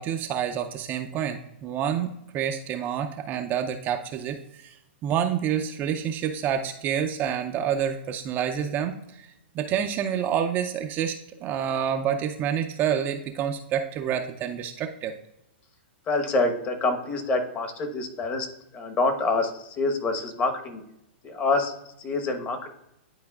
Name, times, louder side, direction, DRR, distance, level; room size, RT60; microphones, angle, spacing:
voice 1, 0.0-4.8 5.0-9.3 9.5-15.1, right 9 dB, 30° right, 5 dB, 0.5 m, -28 dB
voice 2, 16.1-18.5 18.7-20.8 21.2-21.7 22.0-22.7, left 3 dB, 25° left, 5 dB, 1.1 m, -26 dB
10.5 x 4.6 x 2.3 m, 0.85 s
hypercardioid pair, 130°, 6 cm